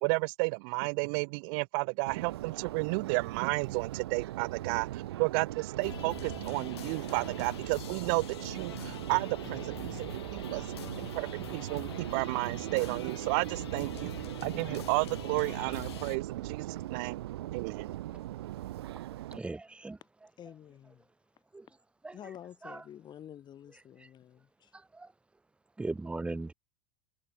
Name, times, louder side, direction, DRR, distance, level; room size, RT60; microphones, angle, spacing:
voice 1, 0.0-10.7 11.0-14.1 14.4-17.2 17.5-17.9, right 37 dB, 50° right, 0.5 m, -32 dB
Subway metro underground, 2.1-19.4, right 14 dB, 65° right, 2.0 m, -39 dB
sound 1, 5.8-16.2, left 12 dB, 70° left, 1.4 m, -45 dB
voice 2, 19.3-20.0 21.5-21.7 22.0-22.1 22.6-22.8 25.0-25.1 25.8-26.5, right 3 dB, 10° right, 0.7 m, -37 dB
voice 3, 20.4-21.0 22.1-24.7, left 10 dB, 30° left, 2.1 m, -49 dB
figure-of-eight pair, 85°, 14 cm